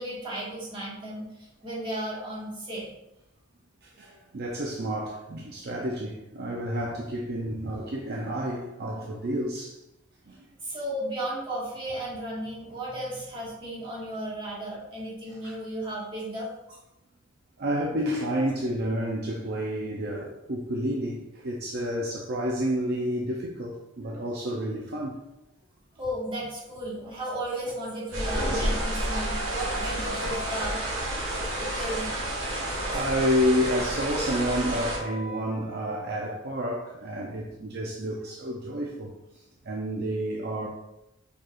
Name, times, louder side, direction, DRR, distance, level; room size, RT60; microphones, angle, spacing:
voice 1, 0.0-2.9 7.6-7.7 10.6-16.8 26.0-32.1 32.9-33.0, right 1 dB, 25° right, -6 dB, 1.6 m, -35 dB
voice 2, 3.8-9.7 10.3-10.5 15.3-15.6 17.6-25.2 31.4-31.5 32.7-39.1 39.7-40.7, equal, 55° right, -1 dB, 0.5 m, -30 dB
sound 1, 28.1-35.0, right 1 dB, 70° right, 1.4 m, -30 dB
Wind instrument woodwind instrument, 28.2-30.8 31.4-36.0, equal, 80° left, 0.6 m, -40 dB
4.6 x 4.5 x 2.4 m, 0.89 s
head